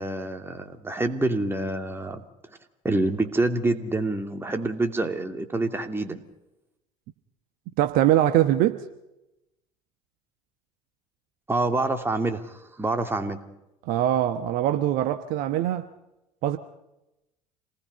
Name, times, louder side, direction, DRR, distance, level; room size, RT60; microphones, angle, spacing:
voice 1, 0.0-2.2 2.8-6.2 11.5-13.4, right 2 dB, 15° right, 2.7 m, -27 dB
voice 2, 7.8-8.8 13.9-15.9 16.4-16.6, right 12 dB, 55° right, 1.1 m, -22 dB
27.5 x 19.0 x 5.5 m
figure-of-eight pair, 60°, 18 cm